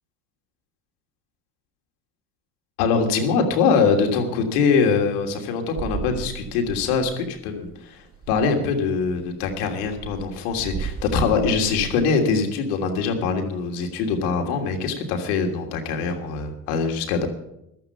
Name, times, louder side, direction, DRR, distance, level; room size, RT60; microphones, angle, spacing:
voice 1, 2.8-17.3, left 5 dB, 75° left, 4 dB, 3.0 m, -23 dB
sound 1, 5.7-7.4 7.6-7.8 8.0-8.5 9.0-12.1, right 6 dB, 30° right, 1.9 m, -35 dB
15.5 x 12.5 x 5.9 m, 0.82 s
hypercardioid pair, 70°, 46 cm